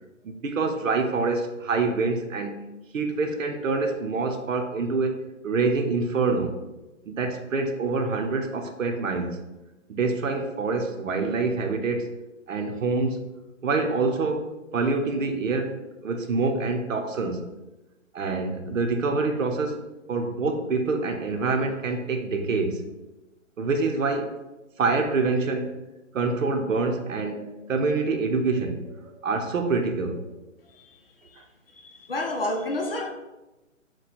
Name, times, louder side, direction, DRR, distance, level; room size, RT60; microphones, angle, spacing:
voice 1, 0.2-6.6 7.0-9.5 9.9-12.1 12.5-13.3 13.6-17.5 18.1-22.9 23.6-24.4 24.8-25.8 26.1-30.3, right 3 dB, 80° right, 5 dB, 0.8 m, -26 dB
voice 2, 31.7-33.1, left 1 dB, 45° left, 3 dB, 0.5 m, -30 dB
4.6 x 2.3 x 4.2 m, 1.0 s
hypercardioid pair, 180°, 39 cm